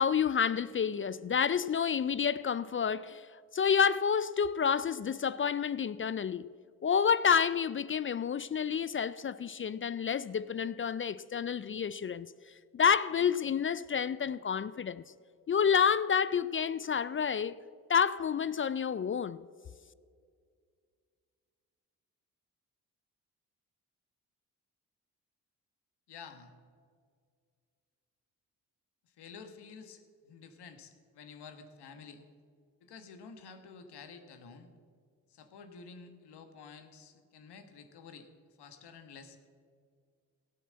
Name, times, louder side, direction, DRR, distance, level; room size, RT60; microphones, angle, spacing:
voice 1, 0.0-3.3 3.5-6.5 6.8-12.3 12.7-15.0 15.5-17.6 17.9-19.4, left 7 dB, 30° left, 0.4 m, -29 dB
voice 2, 26.1-26.5 29.0-32.2 32.8-34.7 35.3-38.3 38.6-39.5, left 5 dB, 70° left, 1.5 m, -51 dB
16.5 x 6.8 x 7.6 m
hypercardioid pair, 40°, 42 cm